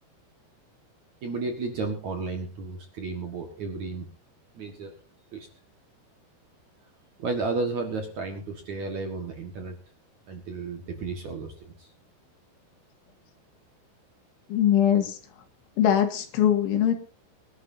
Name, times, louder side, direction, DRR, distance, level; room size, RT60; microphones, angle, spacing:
voice 1, 1.2-4.1 4.5-4.9 5.3-5.5 7.2-9.8 10.3-11.5 11.8-11.9, right 3 dB, 55° right, 4 dB, 2.2 m, -32 dB
voice 2, 14.5-15.2 15.8-17.0, left 10 dB, 80° left, 6 dB, 4.4 m, -22 dB
24.0 x 11.5 x 2.7 m, 0.36 s
omnidirectional pair, 5.3 m